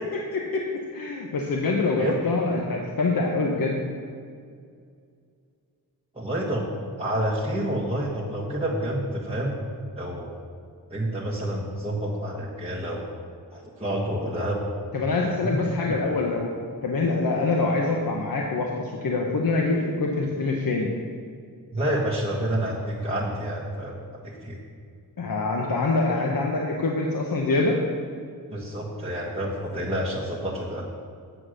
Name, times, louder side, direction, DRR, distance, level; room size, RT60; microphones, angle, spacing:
voice 1, 0.9-3.8 14.9-16.5 16.8-20.9 25.2-27.8, left 3 dB, 65° left, 0 dB, 1.1 m, -25 dB
voice 2, 6.1-6.7 7.0-9.5 10.0-10.3 10.9-13.0 13.5-14.6 15.4-15.5 15.8-15.9 21.7-24.6 28.5-30.9, right 1 dB, 15° right, -5 dB, 1.5 m, -28 dB
8.3 x 7.7 x 6.4 m, 2.2 s
wide cardioid pair, 70°, 37 cm